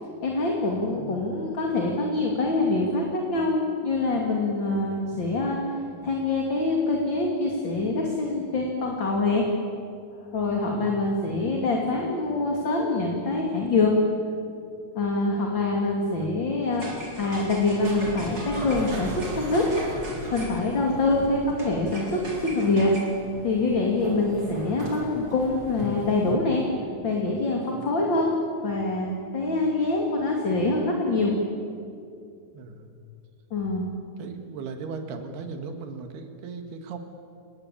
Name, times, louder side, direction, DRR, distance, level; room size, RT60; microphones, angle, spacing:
voice 1, 0.2-5.6 6.0-9.4 10.3-13.9 14.9-16.9 17.2-19.6 20.3-22.9 23.4-26.6 27.0-28.3 28.6-31.3 33.5-33.9, left 2 dB, 35° left, 0 dB, 2.9 m, -25 dB
voice 2, 10.7-11.1 27.7-28.0 32.5-32.9 34.2-37.0, right 4 dB, 80° right, 6 dB, 3.8 m, -38 dB
sound 1, 16.7-26.3, right 1 dB, 25° right, 4.2 m, -36 dB
28.5 x 20.5 x 8.5 m, 2.4 s
omnidirectional pair, 4.5 m